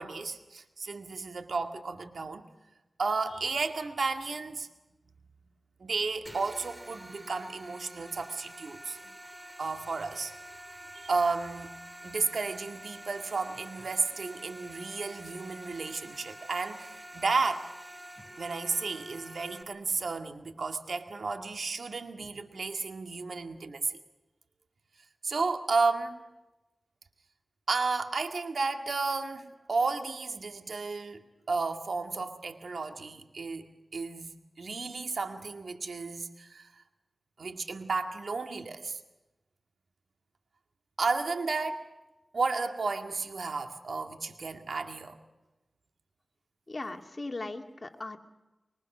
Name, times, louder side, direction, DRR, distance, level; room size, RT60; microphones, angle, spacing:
voice 1, 0.0-2.5 3.0-4.7 5.8-9.0 9.6-10.3 10.9-11.7 12.0-17.7 18.4-24.0 25.2-26.2 27.7-33.7 33.9-36.7 37.4-39.0 41.0-41.9 42.3-45.2, right 4 dB, 80° right, 6 dB, 2.1 m, -33 dB
sound 1, 6.3-19.6, right 1 dB, 25° right, 2.9 m, -47 dB
voice 2, 46.7-48.2, left 2 dB, 45° left, 4 dB, 2.7 m, -38 dB
24.5 x 23.5 x 6.2 m, 1.0 s
cardioid pair, 40°, 0 cm